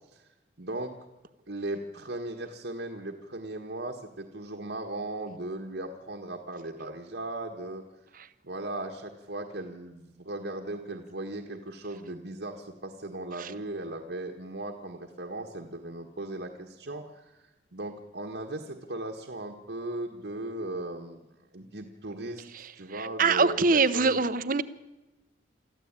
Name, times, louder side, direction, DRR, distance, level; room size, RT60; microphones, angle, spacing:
voice 1, 0.6-0.9 1.5-7.8 8.4-17.4 17.7-21.3 21.5-24.2, right 2 dB, 80° right, 2 dB, 1.6 m, -37 dB
voice 2, 22.5-24.6, right 4 dB, 50° right, 14 dB, 0.9 m, -24 dB
24.0 x 14.5 x 8.9 m, 1.0 s
head